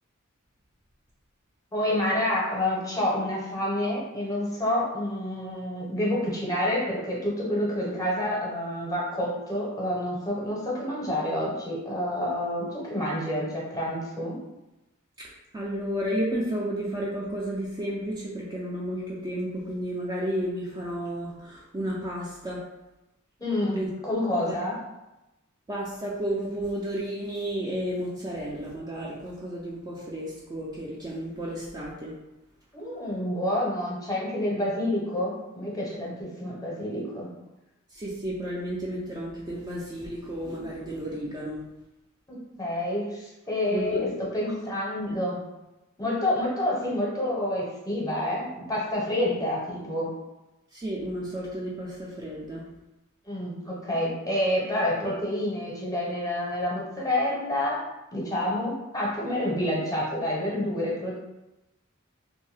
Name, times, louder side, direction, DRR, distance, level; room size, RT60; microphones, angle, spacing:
voice 1, 1.7-14.4 23.4-24.7 32.7-37.3 42.3-45.4 46.0-50.1 53.3-57.9 58.1-61.2, left 1 dB, 15° left, -4 dB, 0.7 m, -28 dB
voice 2, 15.2-22.6 23.7-23.9 24.4-24.5 25.7-32.1 37.9-41.6 43.7-43.9 50.7-52.7, equal, 20° right, -5 dB, 0.3 m, -32 dB
2.6 x 2.2 x 3.2 m, 0.98 s
head